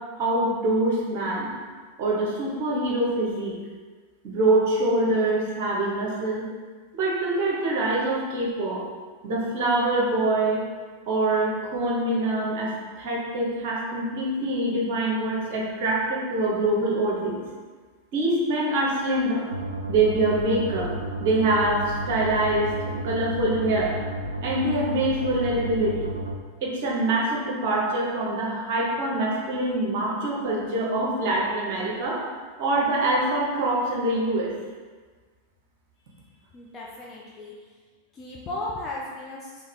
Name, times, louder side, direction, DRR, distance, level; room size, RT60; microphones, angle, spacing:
voice 1, 0.2-1.5 2.0-3.5 4.2-6.4 6.9-8.8 9.2-10.6 11.1-17.4 18.1-19.5 19.9-20.9 21.2-23.9 24.4-26.1 26.6-32.2 32.6-34.5, right 2 dB, 50° right, -3 dB, 0.9 m, -24 dB
sound 1, 19.5-26.4, right 1 dB, 85° right, 0.3 m, -32 dB
voice 2, 36.5-37.5 38.1-39.6, left 2 dB, 30° left, -4 dB, 0.5 m, -35 dB
3.5 x 2.9 x 3.4 m, 1.5 s
figure-of-eight pair, 90°, 0 cm